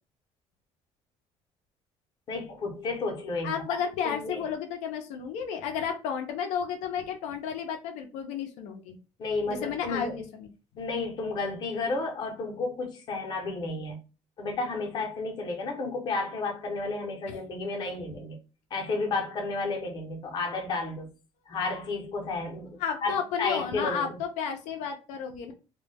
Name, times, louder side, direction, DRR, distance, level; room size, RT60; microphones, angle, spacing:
voice 1, 2.3-3.6 4.0-4.4 9.2-10.2 10.8-14.0 14.4-18.4 18.7-21.1 21.5-24.1, left 3 dB, 40° left, 0.7 m, -32 dB
voice 2, 3.4-9.0 9.5-10.5 17.3-17.4 22.8-25.5, left 7 dB, 85° left, 0.5 m, -32 dB
2.2 x 2.0 x 3.3 m
cardioid pair, 160°, 12 cm